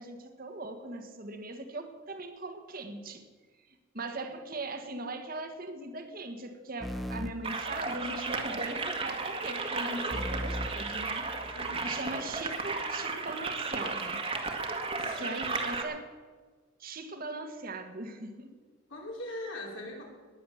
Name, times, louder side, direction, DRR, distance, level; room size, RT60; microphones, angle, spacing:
voice 1, 0.0-3.3 3.9-11.3 11.8-14.2 15.1-16.0 16.8-18.5, right 2 dB, 45° right, 6 dB, 1.6 m, -40 dB
sound 1, 6.8-8.4 10.1-11.9, equal, ahead, 0.8 m, -39 dB
sound 2, 7.4-15.8, right 3 dB, 30° right, 1.7 m, -34 dB
voice 2, 11.5-12.0 15.0-15.3 18.9-20.0, left 1 dB, 80° left, -1 dB, 5.0 m, -41 dB
19.0 x 10.0 x 7.2 m, 1.4 s
head